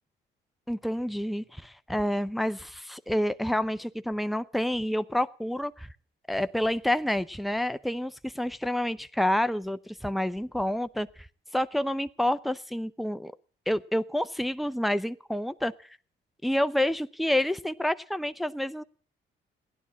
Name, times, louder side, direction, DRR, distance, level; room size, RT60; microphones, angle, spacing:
voice 1, 0.7-5.9 6.3-11.1 11.5-13.3 13.7-15.7 16.4-18.8, left 1 dB, ahead, 12 dB, 0.6 m, -28 dB
16.5 x 11.0 x 7.3 m, 0.44 s
cardioid pair, 90°, 20 cm